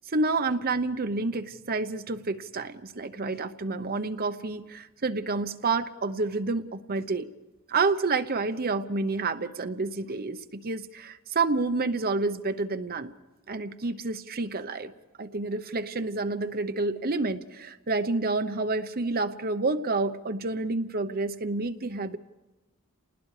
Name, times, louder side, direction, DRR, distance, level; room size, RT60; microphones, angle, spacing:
voice 1, 0.1-7.3 7.7-13.1 13.5-14.9 15.2-22.2, right 3 dB, 45° right, 9 dB, 0.9 m, -29 dB
28.5 x 20.0 x 4.9 m, 1.1 s
head